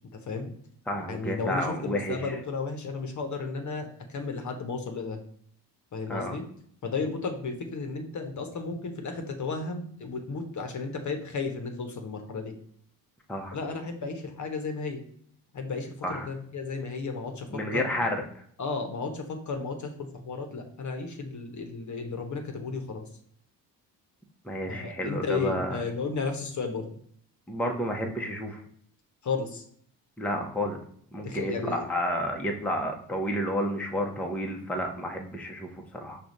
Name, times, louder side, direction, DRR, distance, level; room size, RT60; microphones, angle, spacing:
voice 1, 0.1-0.5 1.1-5.2 5.9-6.4 6.8-12.5 13.5-15.0 15.5-17.9 18.6-23.1 24.6-26.9 29.2-29.6 31.2-31.8, left 4 dB, 40° left, 5 dB, 0.9 m, -33 dB
voice 2, 0.9-2.3 6.1-6.4 13.3-13.6 16.0-16.3 17.5-18.2 24.4-25.8 27.5-28.6 30.2-30.8 31.1-36.2, equal, 5° left, 1 dB, 0.8 m, -31 dB
4.8 x 2.4 x 4.1 m, 0.63 s
supercardioid pair, 55°, 44 cm